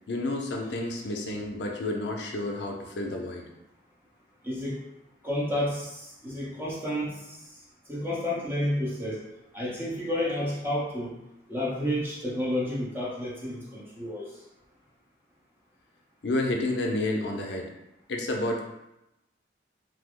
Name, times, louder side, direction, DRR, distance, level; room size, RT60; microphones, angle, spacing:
voice 1, 0.1-3.4 16.2-17.7 18.1-18.6, left 2 dB, 70° left, 1 dB, 0.5 m, -30 dB
voice 2, 4.4-4.8 5.2-7.4 7.9-9.2 9.5-11.1 11.5-14.3, left 1 dB, 10° right, -6 dB, 0.7 m, -30 dB
3.2 x 2.0 x 3.6 m, 0.92 s
head